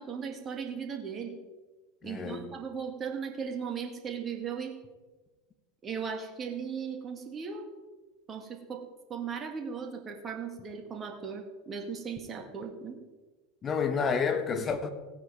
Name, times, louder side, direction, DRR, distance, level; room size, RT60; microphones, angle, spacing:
voice 1, 0.0-1.4 2.0-4.8 5.8-7.7 8.3-13.0 14.6-14.7, right 6 dB, 30° right, 2.0 m, -37 dB
voice 2, 2.0-2.5 13.6-14.9, left 6 dB, 25° left, 1.4 m, -29 dB
16.5 x 9.5 x 3.6 m
figure-of-eight pair, 80°, 0 cm